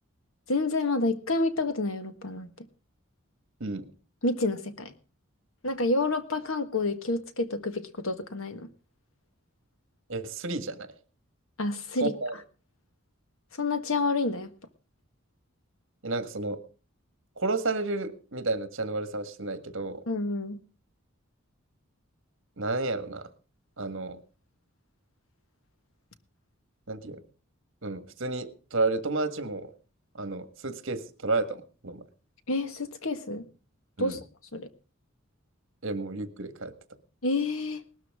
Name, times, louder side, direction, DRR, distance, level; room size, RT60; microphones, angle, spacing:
voice 1, 0.5-2.5 4.2-4.9 5.6-8.7 11.6-12.1 13.5-14.5 20.1-20.6 32.5-33.5 34.0-34.2 34.5-34.7 37.2-37.8, left 2 dB, 75° left, 1.5 m, -29 dB
voice 2, 10.1-10.9 12.0-12.3 16.0-16.6 17.4-20.0 22.6-23.3 23.8-24.2 26.9-27.2 27.8-29.7 30.1-32.0 34.0-34.2 35.8-36.7, right 3 dB, 65° right, 1.7 m, -31 dB
19.0 x 13.0 x 3.6 m
head